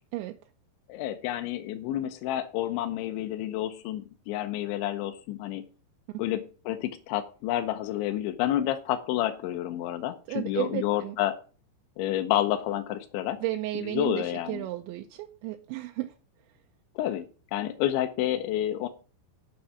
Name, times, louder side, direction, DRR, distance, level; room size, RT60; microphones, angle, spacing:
voice 1, 0.9-5.6 6.2-11.3 12.0-13.4 13.7-14.6 17.0-18.9, left 12 dB, 85° left, 7 dB, 3.1 m, -29 dB
voice 2, 10.3-11.2 13.4-16.1, right 16 dB, 85° right, 5 dB, 3.0 m, -33 dB
8.5 x 7.0 x 7.6 m, 0.37 s
omnidirectional pair, 5.3 m